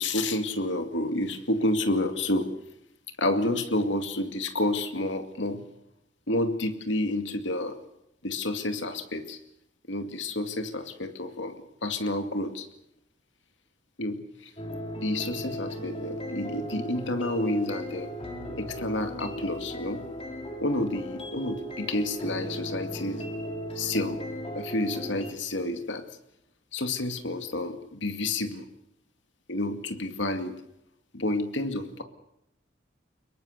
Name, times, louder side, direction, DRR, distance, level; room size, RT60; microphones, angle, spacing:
voice 1, 0.0-2.5 3.2-5.6 6.3-7.8 8.2-9.4 9.9-12.7 14.0-14.5 15.0-18.1 18.6-20.0 20.6-23.3 23.8-24.2 24.6-26.0 26.7-28.7 29.5-30.6 31.1-32.0, left 1 dB, 75° left, 7 dB, 2.4 m, -29 dB
sound 1, 14.6-25.3, equal, 30° left, 3.4 m, -37 dB
25.0 x 22.0 x 6.7 m, 0.81 s
head